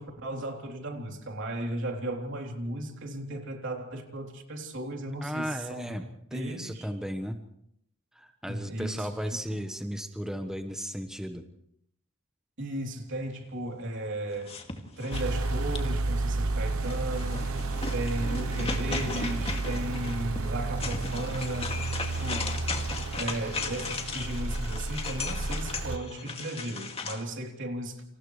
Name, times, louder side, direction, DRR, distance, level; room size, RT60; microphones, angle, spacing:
voice 1, 0.0-6.0 6.3-6.9 8.5-9.6 12.6-14.6 15.0-17.5 17.9-21.8 22.1-22.6 23.1-28.0, right 1 dB, 60° right, 3.5 m, -35 dB
voice 2, 5.2-6.0 6.3-7.4 8.1-11.4, equal, 5° right, 1.3 m, -35 dB
sound 1, 14.3-16.1 16.8-27.2, left 4 dB, 30° left, 2.4 m, -37 dB
sound 2, 15.1-26.0, right 2 dB, 85° right, 1.0 m, -32 dB
29.5 x 27.5 x 3.3 m
head